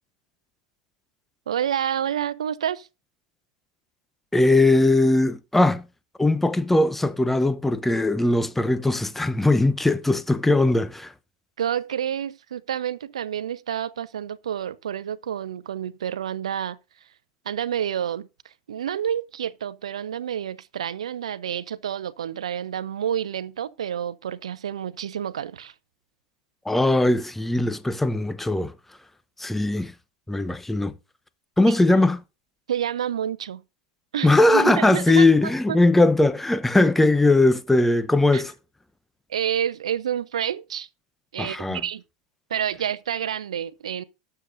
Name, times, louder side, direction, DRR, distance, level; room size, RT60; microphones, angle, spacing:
voice 1, 1.5-2.9 11.6-16.8 17.4-25.7 31.7-31.8 32.7-33.6 34.1-35.8 38.3-38.4 39.3-40.9 41.3-42.0 42.5-44.0, right 9 dB, 85° right, 0.6 m, -29 dB
voice 2, 4.3-5.8 6.2-11.1 26.7-28.7 29.4-29.9 30.3-30.9 31.6-32.2 34.2-38.5 41.4-41.8, left 2 dB, 5° left, 0.9 m, -20 dB
18.5 x 6.9 x 2.7 m
hypercardioid pair, 95°, 3 cm